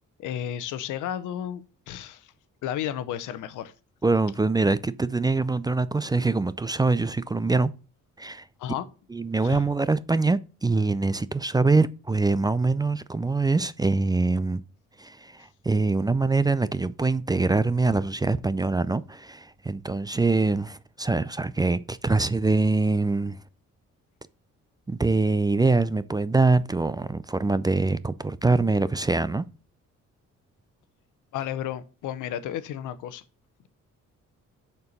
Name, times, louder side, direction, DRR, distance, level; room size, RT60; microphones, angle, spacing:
voice 1, 0.2-2.3 2.6-3.7 8.6-8.9 9.4-9.6 31.3-33.2, left 10 dB, 90° left, 0.9 m, -32 dB
voice 2, 4.0-7.7 8.2-8.5 9.1-14.6 15.0-23.4 24.9-29.5, right 3 dB, 15° right, 0.4 m, -24 dB
6.8 x 4.5 x 6.6 m
cardioid pair, 90°, 30 cm